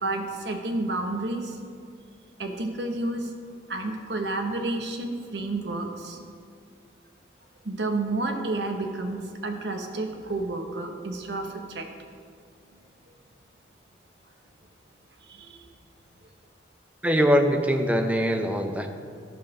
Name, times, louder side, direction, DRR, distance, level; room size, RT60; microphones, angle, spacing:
voice 1, 0.0-1.6 2.4-3.3 3.7-6.2 7.6-11.9 15.3-15.7, right 2 dB, 70° right, 4 dB, 1.0 m, -30 dB
voice 2, 17.0-19.0, equal, 10° right, 5 dB, 0.6 m, -22 dB
12.5 x 4.2 x 5.9 m, 2.1 s
head